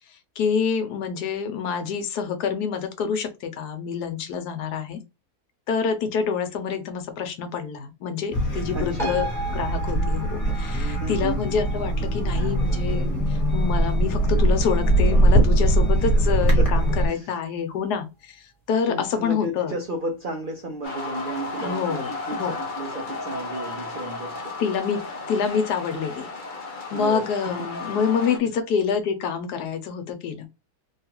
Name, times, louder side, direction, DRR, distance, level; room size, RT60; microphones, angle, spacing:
voice 1, 0.4-5.0 5.7-9.2 9.5-18.4 18.7-19.7 21.6-22.5 24.6-26.3 26.9-30.5, left 6 dB, 80° left, 1.2 m, -27 dB
sound 1, 8.3-17.1, right 1 dB, 20° left, 1.4 m, -21 dB
voice 2, 8.7-9.2 11.0-11.4 16.0-16.2 16.6-17.4 18.9-24.4 25.9-26.1 26.9-27.7 28.0-28.1, right 2 dB, 70° right, 0.5 m, -33 dB
sound 2, 9.0-15.9 16.3-16.4, right 1 dB, ahead, 1.0 m, -38 dB
sound 3, 20.8-28.4, left 3 dB, 55° left, 0.5 m, -34 dB
3.2 x 2.3 x 2.8 m
omnidirectional pair, 1.7 m